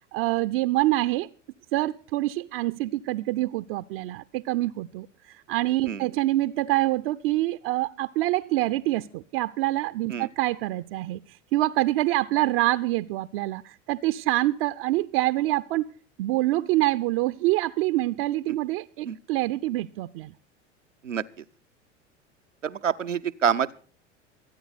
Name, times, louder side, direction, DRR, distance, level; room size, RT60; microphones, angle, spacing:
voice 1, 0.1-1.3 1.7-11.2 11.5-15.9 16.2-20.3, right 17 dB, 50° right, 0.6 m, -26 dB
voice 2, 22.6-23.7, right 8 dB, 90° right, 0.7 m, -26 dB
25.0 x 9.3 x 4.1 m
figure-of-eight pair, 80°, 37 cm